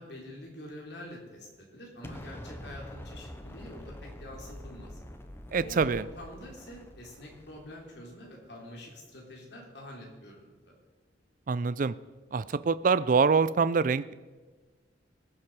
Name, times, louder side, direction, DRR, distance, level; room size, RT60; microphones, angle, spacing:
voice 1, 0.0-5.0 5.6-10.8, left 1 dB, 65° left, -1 dB, 3.4 m, -46 dB
Explosion, 2.0-8.0, left 1 dB, 15° left, 0.8 m, -46 dB
voice 2, 5.5-6.0 11.5-11.9 12.3-14.1, right 5 dB, 45° right, 16 dB, 0.4 m, -25 dB
20.5 x 7.4 x 4.8 m, 1.3 s
head